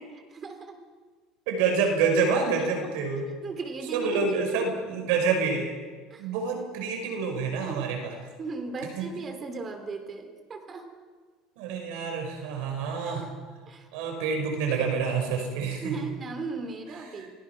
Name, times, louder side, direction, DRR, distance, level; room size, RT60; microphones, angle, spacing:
voice 1, 0.3-0.8 2.6-2.9 3.4-4.8 6.1-6.3 7.6-7.9 8.4-10.9 13.0-13.4 13.7-13.9 15.8-17.3, right 4 dB, 25° right, 6 dB, 3.4 m, -37 dB
voice 2, 1.5-3.3 3.9-5.7 6.2-8.1 9.0-9.1 11.6-13.2 13.9-16.1, right 5 dB, 80° right, 3 dB, 5.6 m, -27 dB
29.5 x 19.0 x 6.1 m, 1.5 s
cardioid pair, 150°, 0 cm